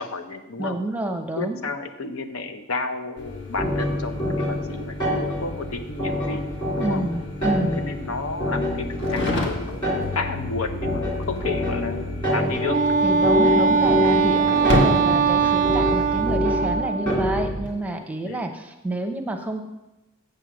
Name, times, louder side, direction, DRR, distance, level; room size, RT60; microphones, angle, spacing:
voice 1, 0.0-0.8 1.4-6.5 6.7-7.1 7.8-9.8 10.1-12.8 14.5-14.8 15.4-15.9 18.2-18.5, left 3 dB, 70° left, 8 dB, 0.8 m, -32 dB
voice 2, 0.6-1.6 6.8-7.9 13.0-19.6, right 1 dB, 5° right, 4 dB, 0.8 m, -28 dB
sound 1, 3.2-16.4, left 1 dB, 55° left, 1.4 m, -32 dB
sound 2, 3.6-17.7, left 1 dB, 25° left, 2.6 m, -26 dB
Wind instrument woodwind instrument, 12.5-17.2, right 6 dB, 35° right, 0.4 m, -21 dB
7.7 x 7.4 x 6.3 m, 0.97 s
head